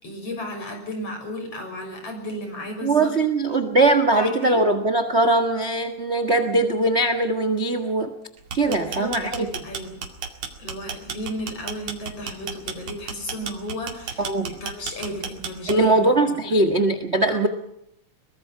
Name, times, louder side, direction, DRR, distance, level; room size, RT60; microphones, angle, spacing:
voice 1, 0.0-3.1 4.1-4.6 8.7-10.1 10.6-16.5 17.3-17.5, left 1 dB, 50° left, 4 dB, 7.1 m, -34 dB
voice 2, 2.8-8.1 8.5-9.5 14.2-14.6 15.7-17.5, right 2 dB, 30° right, 9 dB, 1.2 m, -21 dB
sound 1, 8.4-16.0, right 6 dB, 60° right, 3.3 m, -33 dB
23.0 x 21.0 x 5.7 m, 0.78 s
omnidirectional pair, 3.4 m